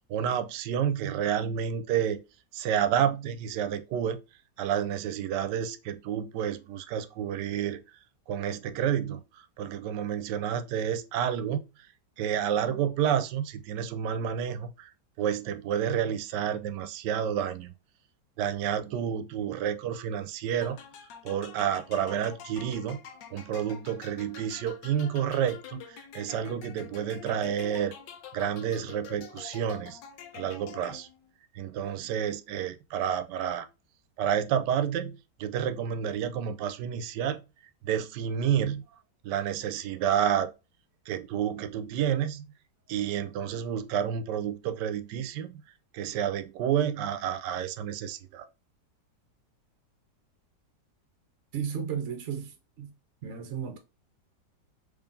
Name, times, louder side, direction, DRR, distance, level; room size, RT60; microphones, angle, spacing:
voice 1, 0.1-2.2 2.5-4.2 4.6-7.8 8.3-11.6 12.2-14.9 15.2-17.7 18.4-20.8 21.2-23.0 23.3-27.9 28.3-30.0 30.3-31.1 31.5-33.7 34.2-37.4 37.8-38.8 39.2-40.5 41.1-42.4 42.9-45.6 45.9-48.5, right 9 dB, 80° right, 1.2 m, -30 dB
sound 1, 20.6-31.3, left 8 dB, 80° left, 1.4 m, -47 dB
voice 2, 51.5-53.0 53.2-53.8, right 7 dB, 60° right, 0.8 m, -34 dB
3.7 x 3.3 x 2.5 m
omnidirectional pair, 1.9 m